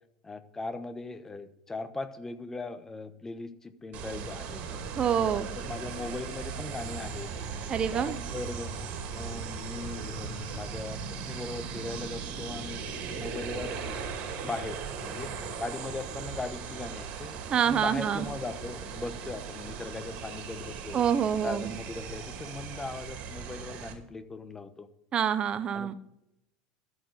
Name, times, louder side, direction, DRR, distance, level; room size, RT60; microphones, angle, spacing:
voice 1, 0.2-4.6 5.2-7.3 7.9-8.8 9.1-11.0 11.2-12.8 13.2-14.1 14.4-15.3 15.6-17.3 17.7-21.0 21.4-24.9 25.7-25.9, left 3 dB, 15° left, 11 dB, 1.0 m, -39 dB
sound 1, 3.9-23.9, right 6 dB, 55° right, 2.5 m, -38 dB
voice 2, 5.0-5.5 7.7-8.2 17.5-18.3 20.9-21.7 25.1-25.9, right 8 dB, 35° right, 11 dB, 0.7 m, -26 dB
13.0 x 4.7 x 7.9 m, 0.83 s
supercardioid pair, 110°, 3 cm